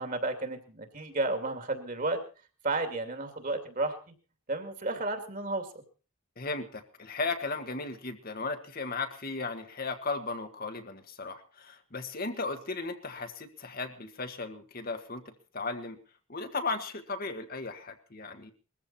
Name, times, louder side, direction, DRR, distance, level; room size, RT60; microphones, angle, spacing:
voice 1, 0.0-2.2 2.6-4.1 4.5-5.7, right 2 dB, 40° right, 7 dB, 2.7 m, -32 dB
voice 2, 6.4-16.0 16.3-18.5, left 3 dB, 45° left, 7 dB, 1.6 m, -36 dB
21.0 x 14.5 x 4.3 m, 0.36 s
head